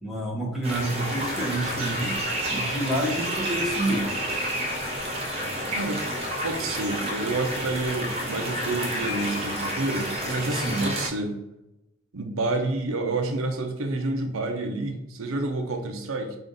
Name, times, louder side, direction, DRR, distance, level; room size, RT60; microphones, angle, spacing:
voice 1, 0.0-2.2 2.5-4.1 10.4-10.9, right 1 dB, ahead, -4 dB, 0.9 m, -28 dB
sound 1, 0.6-11.1, equal, 30° right, 0.9 m, -30 dB
voice 2, 5.7-6.0 6.4-11.4 12.1-16.4, right 2 dB, 80° right, 5 dB, 0.7 m, -29 dB
5.1 x 2.5 x 3.9 m, 0.92 s
head